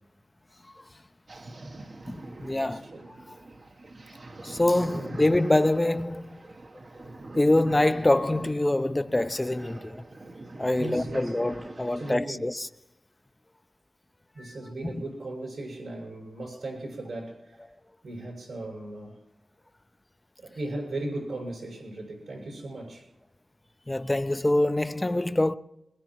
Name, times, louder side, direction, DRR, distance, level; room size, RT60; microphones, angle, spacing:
sound 1, 1.3-12.2, right 2 dB, 55° right, 1.1 m, -44 dB
voice 1, 2.1-2.8 4.4-6.4 7.0-7.1 7.4-10.0 10.6-12.7 14.8-15.0 23.9-25.6, left 1 dB, 25° left, 0.6 m, -25 dB
voice 2, 2.6-3.1 4.8-5.2 10.8-11.4 11.9-12.5 14.3-17.7 18.0-19.2 20.4-23.1, right 2 dB, 90° right, 6.1 m, -37 dB
22.0 x 21.0 x 3.1 m
cardioid pair, 45°, 0 cm